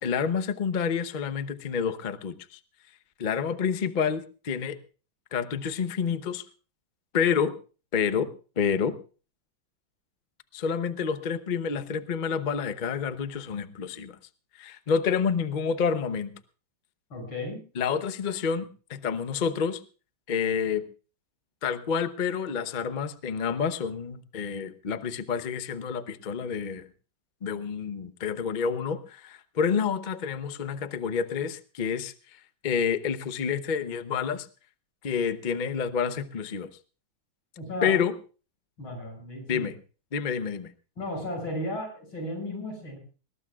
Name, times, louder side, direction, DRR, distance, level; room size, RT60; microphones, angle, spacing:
voice 1, 0.0-2.6 3.2-4.8 5.3-6.4 7.1-7.5 7.9-8.3 8.6-8.9 10.5-14.2 14.6-16.3 17.8-19.8 20.3-20.8 21.6-26.8 27.4-32.1 32.6-34.5 35.0-36.7 37.8-38.1 39.5-39.7 40.1-40.7, left 6 dB, 55° left, 11 dB, 0.5 m, -28 dB
voice 2, 17.1-17.6 37.6-38.0 38.8-39.7 41.0-43.0, left 1 dB, 90° left, 2 dB, 7.6 m, -34 dB
21.0 x 19.5 x 2.4 m, 0.36 s
omnidirectional pair, 2.2 m